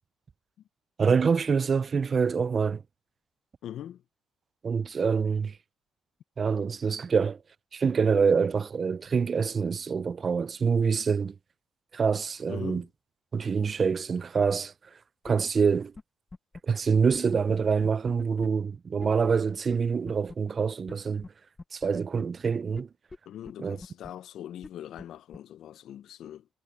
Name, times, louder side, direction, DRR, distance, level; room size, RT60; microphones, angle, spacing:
voice 1, 1.0-2.8 4.6-5.5 6.4-7.4 7.7-11.3 11.9-12.8 13.3-14.7 15.2-15.9 16.7-21.3 21.7-22.9 23.6-23.8, right 5 dB, 40° right, 0.4 m, -26 dB
voice 2, 3.6-4.0 12.5-12.9 23.3-26.5, left 11 dB, 75° left, 0.5 m, -41 dB
sound 1, 15.2-15.3 15.6-15.7 16.0-16.1 16.3-16.6 17.1-17.2 17.5-17.6 17.8-18.5 19.0-19.1 19.3-19.4 19.7-19.8 20.1-20.3 20.9-21.0 21.2-21.3 21.6-22.2 22.7-22.8 23.1-23.2 23.5-23.6 23.8-24.1 24.6-24.7 25.0-25.1 25.3-25.4, left 3 dB, 25° left, 0.4 m, -42 dB
cardioid pair, 90°, 0 cm